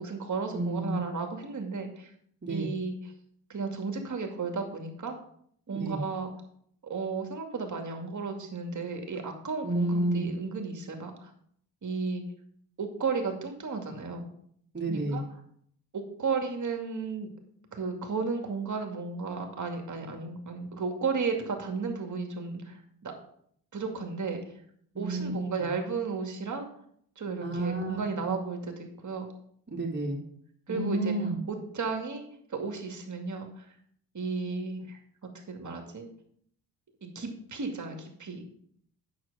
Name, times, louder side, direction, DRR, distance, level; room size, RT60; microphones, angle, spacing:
voice 1, 0.0-2.1 2.5-2.9 3.5-5.2 5.7-6.3 6.8-11.3 11.8-12.2 12.8-14.3 14.9-15.2 15.9-17.3 17.7-23.1 23.7-24.4 25.0-26.7 27.2-29.3 30.7-31.2 31.5-32.2 32.5-33.7 34.1-36.1 37.0-38.4, right 4 dB, 40° right, 4 dB, 2.4 m, -34 dB
voice 2, 0.5-1.0 2.4-2.7 5.7-6.0 9.6-10.2 14.7-15.2 24.9-25.7 27.4-28.3 29.7-30.2 30.7-31.4, right 1 dB, 25° right, -1 dB, 3.1 m, -31 dB
8.8 x 6.5 x 5.0 m, 0.65 s
supercardioid pair, 55°, 44 cm